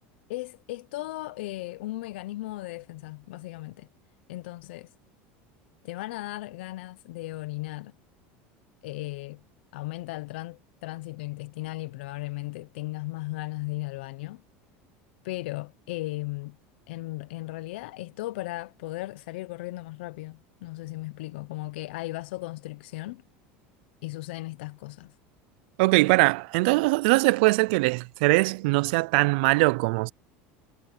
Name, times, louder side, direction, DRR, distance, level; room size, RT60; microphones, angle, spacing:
voice 1, 0.3-3.9 4.3-4.9 5.8-7.9 8.8-9.4 9.7-14.4 15.2-16.6 16.9-23.2 24.0-25.2, left 19 dB, 85° left, 0.7 m, -36 dB
voice 2, 25.8-30.1, right 25 dB, 75° right, 0.4 m, -21 dB
supercardioid pair, 145°, 6 cm